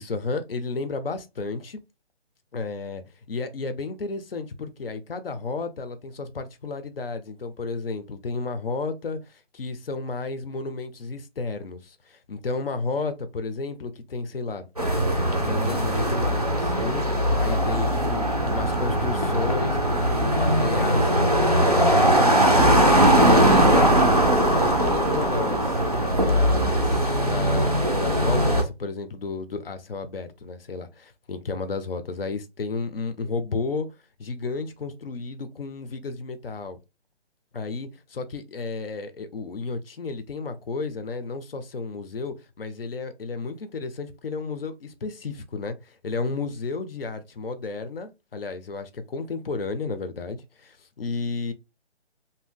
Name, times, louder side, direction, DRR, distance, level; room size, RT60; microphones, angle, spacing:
voice 1, 0.0-1.8 2.5-3.0 3.3-14.7 15.3-25.8 26.2-33.9 34.2-36.8 37.5-51.5, left 4 dB, 55° left, 0.6 m, -32 dB
sound 1, 14.8-28.6, right 1 dB, 35° right, 0.4 m, -20 dB
2.7 x 2.1 x 3.6 m
hypercardioid pair, 175°, 34 cm